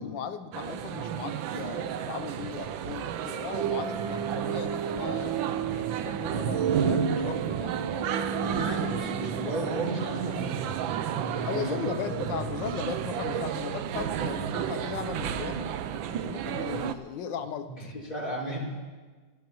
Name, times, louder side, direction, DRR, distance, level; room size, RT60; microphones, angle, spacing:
voice 1, 0.0-7.8 11.4-15.8 16.1-17.9, left 7 dB, 70° left, 9 dB, 1.5 m, -37 dB
sound 1, 0.5-16.9, right 8 dB, 85° right, 1.5 m, -31 dB
voice 2, 8.3-12.4 17.8-18.6, right 1 dB, 25° left, -7 dB, 4.7 m, -35 dB
25.0 x 15.0 x 3.1 m, 1.4 s
omnidirectional pair, 2.1 m